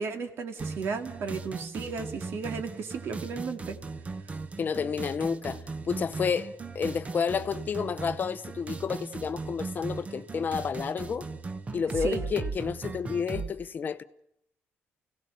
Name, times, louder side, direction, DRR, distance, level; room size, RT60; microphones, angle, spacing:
voice 1, 0.0-3.8 12.0-12.2, right 5 dB, 60° right, 2.4 m, -34 dB
sound 1, 0.6-13.5, right 4 dB, 30° right, 1.1 m, -38 dB
voice 2, 4.6-11.3 11.7-14.0, left 6 dB, 40° left, 0.8 m, -30 dB
29.5 x 17.5 x 6.9 m
cardioid pair, 125°, 5 cm